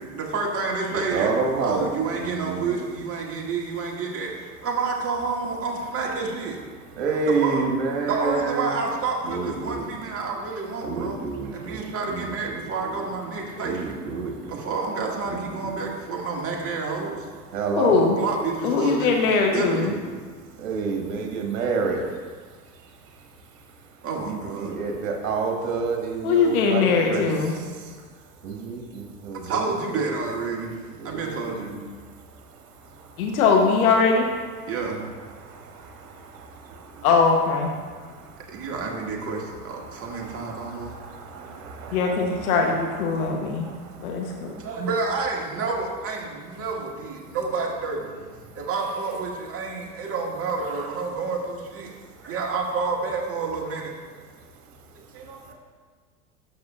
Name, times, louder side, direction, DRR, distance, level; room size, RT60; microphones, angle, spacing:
voice 1, 0.0-1.3 1.6-4.3 4.6-6.6 7.1-7.6 8.1-11.2 11.5-14.0 14.5-17.3 17.9-20.0 24.0-24.8 29.4-30.8 31.0-31.8 34.7-35.1 36.7-36.8 38.5-41.0 41.3-41.5 41.9-42.0 43.6-43.8 44.6-48.1 48.5-51.9 52.2-53.9 55.1-55.5, right 4 dB, 30° right, -1 dB, 1.7 m, -29 dB
voice 2, 0.9-1.9 2.1-2.8 7.0-8.7 9.2-9.9 10.8-12.3 13.6-14.6 17.5-18.0 20.6-22.0 24.2-27.2 27.5-27.6 28.4-29.6 31.0-31.3 34.6-34.7 35.4-37.1 38.0-38.3 40.0-42.5 43.1-44.1, right 4 dB, 60° right, 2 dB, 1.6 m, -29 dB
voice 3, 17.8-18.2 18.6-19.9 26.2-27.5 33.2-34.3 37.0-37.7 41.9-43.7 44.0-44.6, left 5 dB, 65° left, 2 dB, 1.1 m, -21 dB
12.0 x 6.4 x 2.4 m, 1.5 s
figure-of-eight pair, 85°, 47 cm